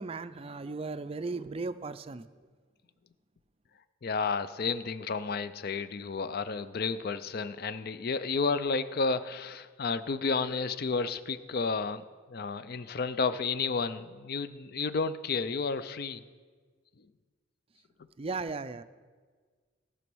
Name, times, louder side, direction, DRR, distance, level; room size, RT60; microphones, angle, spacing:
voice 1, 0.0-2.3 18.2-18.8, right 3 dB, 30° right, 12 dB, 0.4 m, -36 dB
voice 2, 4.0-12.0 12.3-16.2, left 4 dB, 50° left, 13 dB, 0.4 m, -31 dB
18.0 x 6.2 x 6.2 m, 1.5 s
head